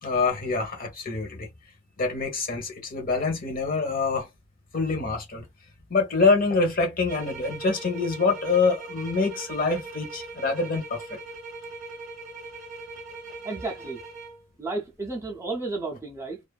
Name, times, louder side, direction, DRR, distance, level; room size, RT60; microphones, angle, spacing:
voice 1, 0.0-1.5 2.0-4.3 4.7-5.4 5.9-11.0, left 4 dB, 45° left, 0.9 m, -25 dB
sound 1, 7.1-14.4, right 3 dB, 35° right, 0.8 m, -40 dB
voice 2, 13.4-14.0 14.6-16.4, right 3 dB, 15° right, 0.5 m, -32 dB
2.6 x 2.4 x 2.3 m
head